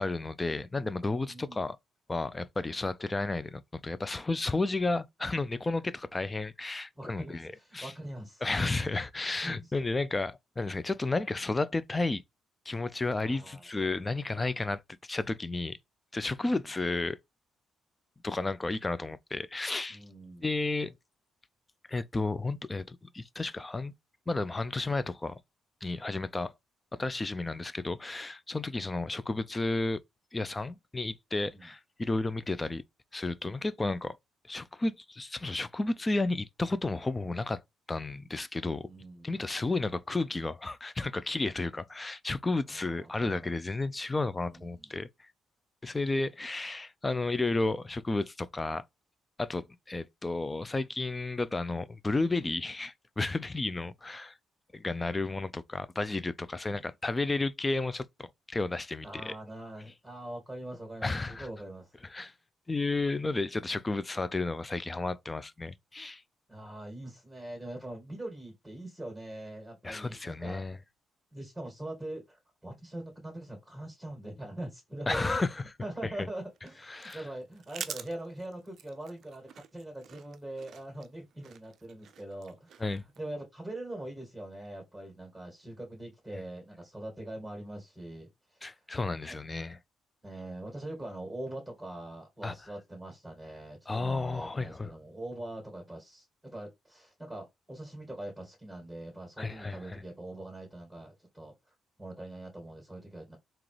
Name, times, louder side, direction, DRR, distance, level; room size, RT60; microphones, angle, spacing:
voice 1, 0.0-1.8 2.1-7.9 8.4-12.2 12.7-15.8 16.1-17.2 18.2-20.0 20.4-20.9 21.9-23.9 24.3-25.4 25.8-26.5 26.9-30.0 30.3-32.8 33.1-34.2 34.5-37.6 37.9-38.9 39.2-45.1 45.8-48.8 49.4-54.3 54.7-59.4 61.0-61.5 62.0-62.3 62.7-66.2 69.8-70.8 75.1-75.6 76.2-76.3 76.9-77.2 82.8-83.0 88.6-89.8 92.4-92.5 93.9-94.9 99.4-100.0, left 2 dB, 20° left, 0.4 m, -32 dB
voice 2, 1.3-1.7 7.0-8.4 9.4-9.7 13.2-14.4 16.4-16.6 19.9-20.5 31.5-31.7 38.8-39.4 42.7-43.5 44.4-44.9 56.7-56.9 59.0-61.9 66.5-70.6 71.3-75.4 75.8-82.8 83.2-88.8 89.3-89.4 90.2-103.4, right 1 dB, ahead, 2.2 m, -43 dB
sound 1, 76.3-83.2, right 8 dB, 65° right, 0.4 m, -47 dB
3.7 x 2.9 x 3.2 m
cardioid pair, 90°, 0 cm